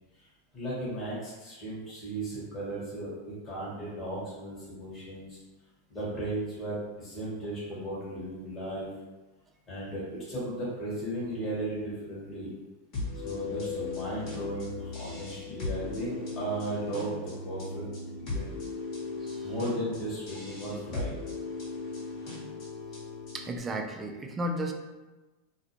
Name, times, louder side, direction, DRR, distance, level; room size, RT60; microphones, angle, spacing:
voice 1, 0.5-5.4 5.9-8.9 9.7-12.5 13.2-17.9 18.2-18.5 19.4-21.2, right 1 dB, 25° left, -9 dB, 1.2 m, -36 dB
sound 1, 12.9-23.6, left 3 dB, 50° left, 1.1 m, -37 dB
voice 2, 23.3-24.7, right 1 dB, 20° right, 4 dB, 0.3 m, -34 dB
2.4 x 2.2 x 2.9 m, 1.2 s
hypercardioid pair, 105°, 0 cm